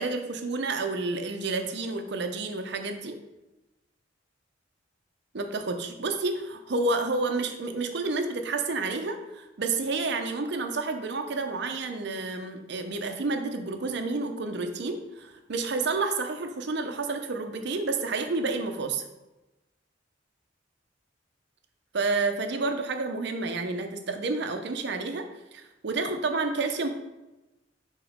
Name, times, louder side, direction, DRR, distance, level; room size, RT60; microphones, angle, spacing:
voice 1, 0.0-3.2 5.3-19.0 21.9-26.9, right 3 dB, 65° right, 6 dB, 0.7 m, -30 dB
5.0 x 3.8 x 5.0 m, 1.0 s
head